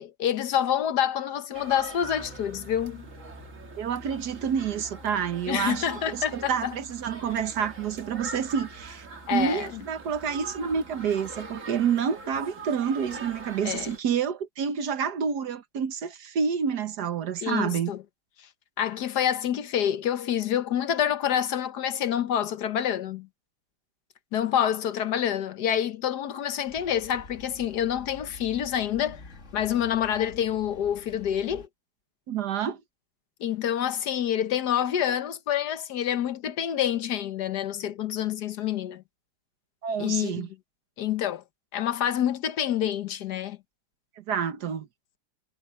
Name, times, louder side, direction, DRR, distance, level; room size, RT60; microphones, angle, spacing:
voice 1, 0.0-3.1 5.5-6.8 9.3-9.8 13.6-13.9 17.4-18.0 18.8-23.3 24.3-29.2 29.5-31.7 33.4-39.0 40.0-40.5 41.0-41.4 41.7-43.6, left 10 dB, 75° left, 1.6 m, -27 dB
sound 1, 1.5-14.0, right 4 dB, 50° right, 2.3 m, -43 dB
Piano, 2.0-11.6, left 1 dB, 15° left, 4.6 m, -50 dB
voice 2, 3.8-17.9 32.3-32.8 39.8-40.5 44.2-44.9, right 7 dB, 75° right, 1.7 m, -28 dB
sound 2, 26.7-31.7, left 3 dB, 45° left, 2.3 m, -47 dB
omnidirectional pair, 1.7 m